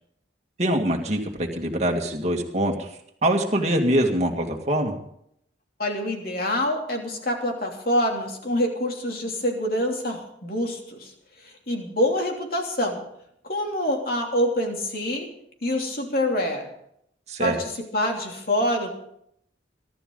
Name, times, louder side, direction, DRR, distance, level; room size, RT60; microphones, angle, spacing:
voice 1, 0.6-2.9 3.2-4.9 17.3-17.6, right 1 dB, 35° right, 1 dB, 2.1 m, -23 dB
voice 2, 5.8-11.1 11.4-13.0 13.4-15.3 15.6-16.7 17.4-18.9, left 1 dB, 50° left, 1 dB, 3.0 m, -26 dB
23.0 x 12.5 x 4.0 m, 0.73 s
head